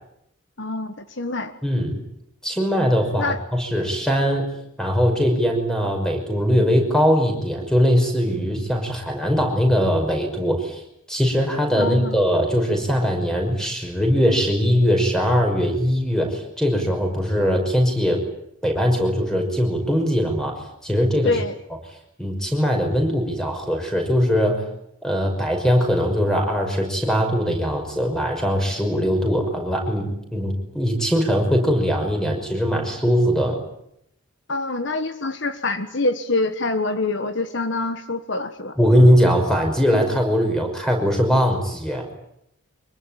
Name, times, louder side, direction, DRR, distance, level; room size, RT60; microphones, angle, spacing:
voice 1, 0.6-1.5 3.2-3.4 11.8-12.2 21.2-21.5 34.5-38.8, left 2 dB, 60° left, 10 dB, 1.4 m, -25 dB
voice 2, 1.6-2.0 2.4-4.5 4.8-10.8 11.1-18.2 18.6-21.3 22.2-24.6 25.0-33.6 38.8-42.1, equal, 5° left, 3 dB, 5.7 m, -21 dB
25.0 x 23.0 x 9.1 m, 0.78 s
head